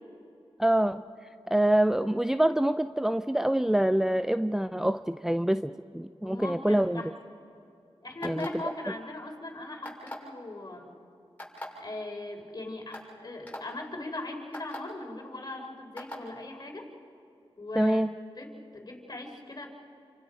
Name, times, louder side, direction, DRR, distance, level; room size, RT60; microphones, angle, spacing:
voice 1, 0.6-1.0 1.5-7.0 8.2-8.5 17.8-18.1, right 1 dB, 5° right, 10 dB, 0.5 m, -25 dB
voice 2, 6.2-7.1 8.0-10.9 11.8-16.9 17.6-18.0 18.4-19.7, left 2 dB, 40° left, 1 dB, 4.4 m, -39 dB
sound 1, 8.2-8.7 9.8-10.3 11.4-11.6 12.4-12.5 12.9-13.1 13.5-13.6 14.5-14.8 16.0-16.2, left 1 dB, 15° left, 7.0 m, -39 dB
30.0 x 26.0 x 5.3 m, 2.7 s
wide cardioid pair, 75°, 10 cm